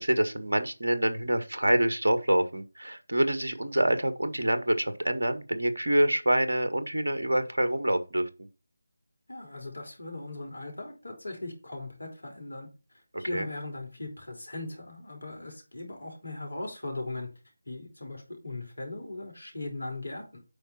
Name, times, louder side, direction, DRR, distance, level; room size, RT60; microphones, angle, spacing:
voice 1, 0.0-8.3 13.3-13.5, right 1 dB, 65° right, 10 dB, 1.7 m, -26 dB
voice 2, 9.3-12.7 13.2-17.3 17.7-20.4, left 2 dB, 65° left, 3 dB, 4.9 m, -39 dB
9.0 x 5.9 x 4.4 m, 0.31 s
figure-of-eight pair, 160°, 0 cm